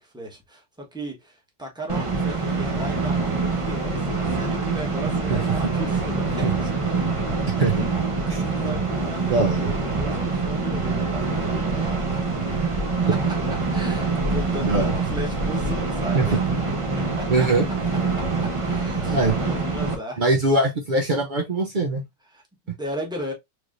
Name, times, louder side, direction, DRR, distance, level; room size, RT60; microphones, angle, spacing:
voice 1, 0.0-6.7 7.5-7.8 8.3-12.3 13.1-13.2 13.7-16.4 16.9-17.5 18.1-19.2 19.4-20.6 22.3-23.3, equal, 5° right, 0.9 m, -36 dB
sound 1, 1.9-20.0, right 3 dB, 30° right, 0.6 m, -25 dB
voice 2, 9.3-9.7 14.6-14.9 16.1-16.3 17.3-17.6 19.1-19.4 20.2-22.0, right 2 dB, 85° right, 0.4 m, -21 dB
4.6 x 3.2 x 2.5 m
omnidirectional pair, 2.0 m